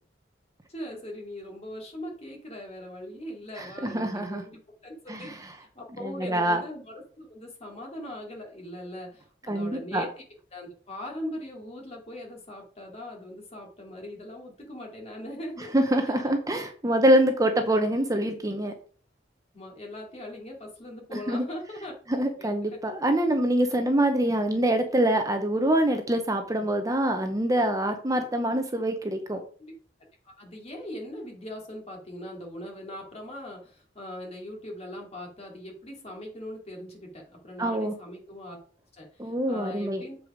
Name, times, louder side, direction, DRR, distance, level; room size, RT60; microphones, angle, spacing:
voice 1, 0.7-5.3 5.6-10.1 10.5-15.7 16.0-16.1 19.5-21.9 22.4-22.5 29.6-29.7 30.2-38.6 38.9-40.2, left 1 dB, 35° left, 0 dB, 2.7 m, -40 dB
voice 2, 3.6-4.4 5.1-5.3 6.0-6.6 9.5-10.0 15.7-18.7 21.1-21.5 22.1-29.4 37.6-37.9 39.2-40.0, right 1 dB, 20° right, 6 dB, 0.8 m, -25 dB
7.6 x 4.8 x 5.0 m, 0.43 s
head